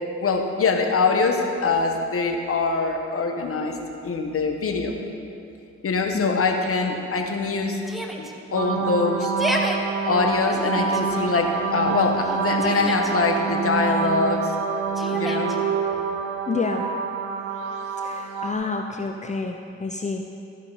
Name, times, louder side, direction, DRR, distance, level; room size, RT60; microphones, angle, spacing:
voice 1, 0.2-3.8 4.0-5.0 5.8-7.8 8.2-9.3 10.0-14.6 15.1-15.5, left 4 dB, 45° left, 3 dB, 1.3 m, -23 dB
Yell, 7.9-8.3 9.2-9.8 10.5-11.0 12.2-13.1 15.0-15.6, equal, ahead, 1.0 m, -30 dB
sound 1, 8.5-18.5, right 5 dB, 85° right, 0.7 m, -27 dB
voice 2, 16.5-16.9 18.0-20.2, left 4 dB, 20° left, 3 dB, 0.6 m, -28 dB
14.0 x 5.1 x 4.1 m, 2.6 s
hypercardioid pair, 45°, 32 cm